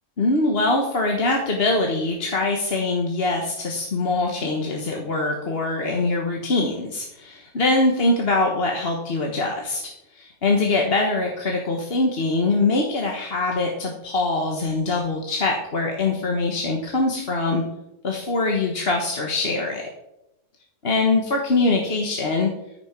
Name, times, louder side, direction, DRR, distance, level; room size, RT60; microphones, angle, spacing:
voice 1, 0.2-17.6 18.0-19.9 20.8-22.5, left 2 dB, 50° left, 0 dB, 1.5 m, -23 dB
14.5 x 6.0 x 5.9 m, 0.88 s
omnidirectional pair, 1.3 m